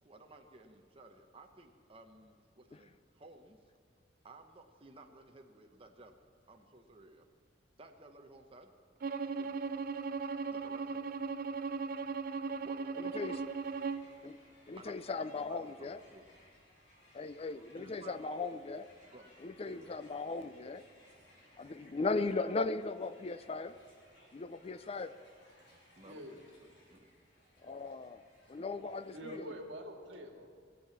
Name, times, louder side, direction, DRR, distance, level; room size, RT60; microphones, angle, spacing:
voice 1, 0.0-3.6 4.2-6.2 6.5-7.3 7.8-8.7 9.3-9.7 10.5-11.1 12.0-12.1 12.6-13.5 14.8-16.3 17.7-18.5 19.1-19.3 19.6-19.9 26.0-27.1, right 2 dB, 30° right, 3 dB, 0.9 m, -56 dB
Bowed string instrument, 9.0-14.1, right 4 dB, 50° right, 0.5 m, -37 dB
Crowd, 13.0-29.7, equal, 70° left, 4.0 m, -63 dB
voice 2, 13.0-13.4 14.2-14.4 14.7-16.0 17.1-18.9 19.4-20.8 21.6-23.8 24.3-25.2 27.6-28.2 28.5-29.5, left 3 dB, 30° left, 14 dB, 0.4 m, -38 dB
voice 3, 26.1-26.4 29.1-30.5, equal, 75° right, 3 dB, 2.0 m, -45 dB
19.5 x 7.6 x 7.2 m, 2.1 s
head